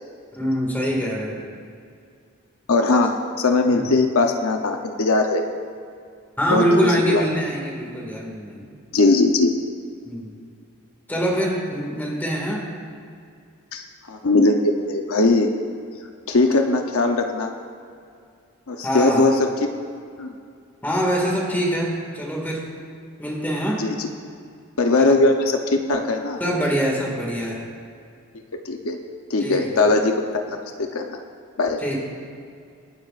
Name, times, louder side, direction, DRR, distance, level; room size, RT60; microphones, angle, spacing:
voice 1, 0.3-1.5 3.7-3.9 6.4-8.8 10.0-10.3 11.1-12.7 18.8-19.3 20.8-22.7 23.2-23.9 25.0-25.1 26.4-27.6 29.4-29.9 31.8-32.0, equal, 10° left, -2 dB, 2.0 m, -24 dB
voice 2, 2.7-3.1 3.4-5.4 6.5-6.7 7.1-7.2 8.9-9.5 13.7-15.5 16.3-17.5 18.7-19.3 20.2-20.3 23.8-24.1 24.8-26.4 28.5-29.0 29.3-31.2 31.6-31.8, left 3 dB, 70° left, 4 dB, 0.8 m, -20 dB
25.5 x 9.6 x 2.5 m, 2.3 s
head